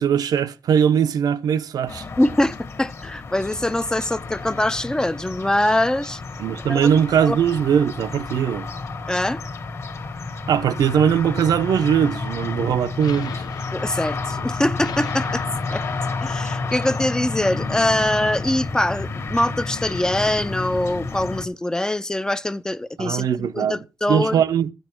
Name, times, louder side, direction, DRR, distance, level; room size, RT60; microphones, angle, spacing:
voice 1, 0.0-2.0 6.4-8.7 10.5-13.4 23.0-23.8 24.1-24.7, right 8 dB, 75° right, 0.8 m, -20 dB
sound 1, 1.9-21.5, left 3 dB, 40° left, 1.5 m, -31 dB
voice 2, 2.2-6.2 6.7-6.9 7.3-7.4 9.1-9.4 13.7-15.4 15.7-15.9 16.2-24.3, left 1 dB, 10° left, 0.5 m, -23 dB
sound 2, 12.4-19.0, left 8 dB, 90° left, 0.8 m, -40 dB
13.5 x 8.0 x 4.4 m
wide cardioid pair, 160°, 7 cm